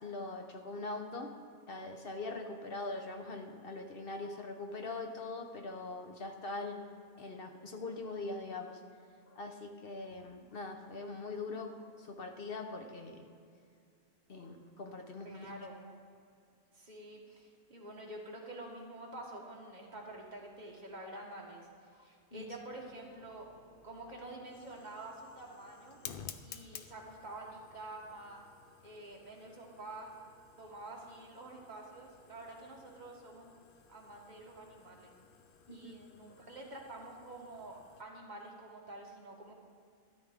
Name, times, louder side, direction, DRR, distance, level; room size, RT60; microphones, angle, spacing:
voice 1, 0.0-1.3 1.7-8.8 9.2-13.4 14.3-15.5 21.9-22.5 35.7-35.9, left 3 dB, 45° left, 4 dB, 0.9 m, -42 dB
voice 2, 15.2-15.8 16.7-21.7 22.0-23.5 23.8-26.0 26.4-28.4 28.8-30.1 30.6-33.6 33.9-35.1 35.7-39.5, right 2 dB, 30° right, -2 dB, 1.6 m, -48 dB
Fire, 22.3-38.0, left 7 dB, 70° left, 0.5 m, -55 dB
13.0 x 10.0 x 3.6 m, 2.3 s
omnidirectional pair, 1.5 m